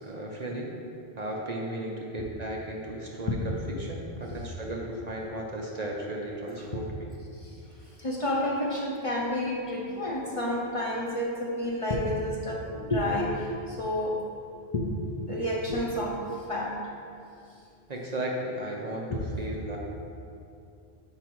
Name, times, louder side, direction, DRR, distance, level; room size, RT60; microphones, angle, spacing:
voice 1, 0.0-0.7 1.2-6.9 17.9-19.8, right 1 dB, 45° right, -1 dB, 0.6 m, -35 dB
voice 2, 6.5-6.8 7.4-7.5 8.0-14.2 14.7-16.8 19.1-19.2, left 1 dB, 40° left, -3 dB, 0.6 m, -30 dB
5.7 x 4.9 x 4.6 m, 2.6 s
omnidirectional pair, 1.1 m